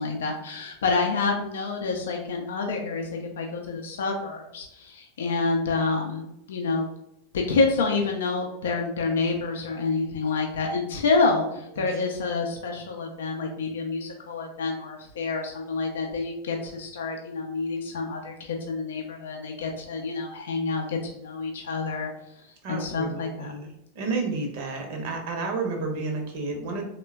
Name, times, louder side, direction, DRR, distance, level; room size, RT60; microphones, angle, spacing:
voice 1, 0.0-6.9 7.3-22.1 22.7-23.5, left 4 dB, 65° left, 1 dB, 0.4 m, -28 dB
voice 2, 22.6-26.9, right 3 dB, 55° right, 3 dB, 0.7 m, -31 dB
3.2 x 2.1 x 2.2 m, 0.81 s
figure-of-eight pair, 85°, 0 cm